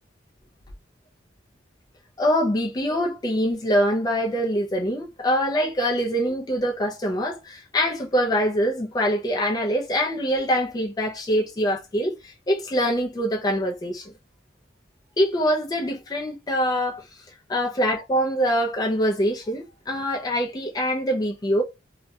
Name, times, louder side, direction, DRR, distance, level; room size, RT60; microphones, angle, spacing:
voice 1, 2.2-14.1 15.2-17.1 17.5-21.6, equal, 20° left, 0.3 m, -24 dB
2.2 x 2.1 x 2.7 m
head